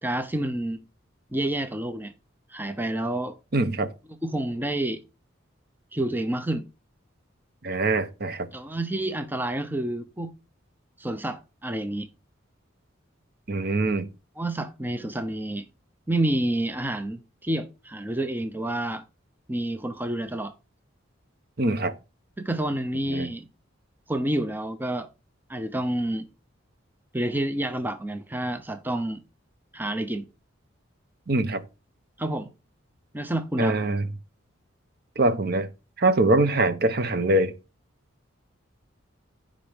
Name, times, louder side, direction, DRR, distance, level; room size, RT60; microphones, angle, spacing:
voice 1, 0.0-0.8 1.3-2.1 2.5-3.4 4.2-5.0 5.9-6.6 8.5-10.3 11.0-12.1 14.4-15.6 16.1-19.0 19.5-20.6 22.4-23.5 24.1-25.1 25.5-26.3 27.1-29.2 29.7-30.3 32.2-32.5 33.1-33.9, right 1 dB, 10° right, 0.5 m, -29 dB
voice 2, 3.5-3.9 7.6-8.5 13.5-14.1 21.6-21.9 23.1-23.3 31.3-31.6 33.6-34.0 35.2-35.7 36.0-37.5, right 2 dB, 50° right, 0.8 m, -23 dB
15.0 x 5.1 x 3.5 m
head